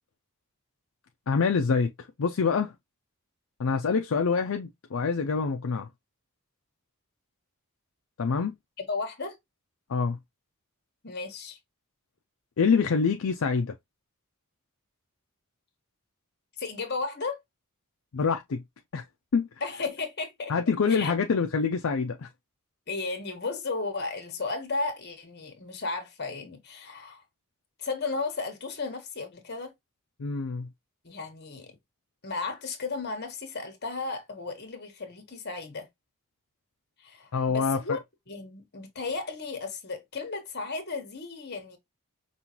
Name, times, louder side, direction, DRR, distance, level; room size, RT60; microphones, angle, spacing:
voice 1, 1.3-2.7 3.6-5.9 8.2-8.5 9.9-10.2 12.6-13.7 18.1-18.6 18.9-19.0 19.3-19.5 20.5-22.3 30.2-30.7 37.3-38.0, left 5 dB, 65° left, 0.5 m, -26 dB
voice 2, 8.8-9.4 11.0-11.6 16.6-17.4 19.6-20.5 20.9-21.1 22.9-27.2 27.8-29.7 31.0-31.8 32.2-35.9 37.0-38.0 38.3-41.8, left 3 dB, 50° left, 1.3 m, -34 dB
5.5 x 2.4 x 2.9 m
head